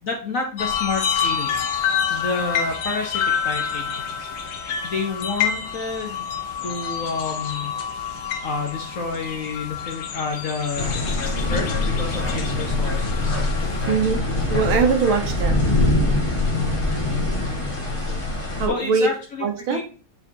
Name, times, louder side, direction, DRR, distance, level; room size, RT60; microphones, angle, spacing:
voice 1, 0.0-4.3 4.8-6.3 6.6-7.7 8.4-11.0 11.5-13.5 16.5-16.9 18.6-19.8, left 4 dB, 50° left, 1 dB, 1.0 m, -29 dB
sound 1, 0.6-13.9, left 7 dB, 70° left, 1.6 m, -28 dB
sound 2, 10.8-18.7, left 2 dB, 20° left, 1.1 m, -23 dB
voice 2, 13.9-14.2 14.5-15.6 18.6-19.1 19.4-19.8, right 5 dB, 75° right, 5 dB, 1.9 m, -21 dB
8.4 x 4.8 x 2.7 m, 0.39 s
omnidirectional pair, 2.3 m